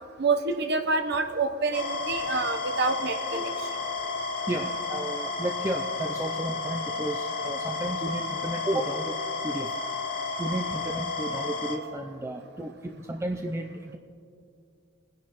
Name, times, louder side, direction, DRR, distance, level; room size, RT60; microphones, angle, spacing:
voice 1, 0.2-3.5, right 3 dB, 60° right, 6 dB, 0.8 m, -27 dB
sound 1, 1.7-11.8, left 3 dB, 55° left, 1.6 m, -32 dB
voice 2, 4.5-9.7 10.4-14.0, right 1 dB, 15° right, 4 dB, 0.4 m, -33 dB
21.5 x 10.5 x 3.0 m, 2.5 s
head